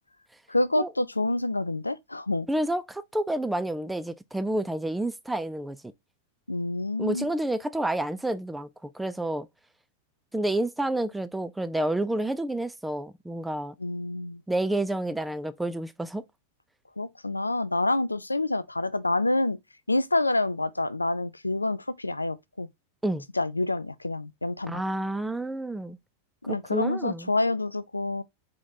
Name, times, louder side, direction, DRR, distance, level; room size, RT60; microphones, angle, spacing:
voice 1, 0.5-2.5 6.5-7.3 13.8-14.4 17.0-19.6 19.9-22.7 23.3-24.8 26.4-28.2, left 2 dB, 85° left, 0.3 m, -27 dB
voice 2, 2.5-5.9 7.0-9.5 10.3-13.7 14.5-16.2 23.0-23.2 24.7-26.0 26.5-27.3, right 1 dB, 5° right, 0.4 m, -29 dB
3.6 x 3.5 x 2.8 m
figure-of-eight pair, 90°, 0 cm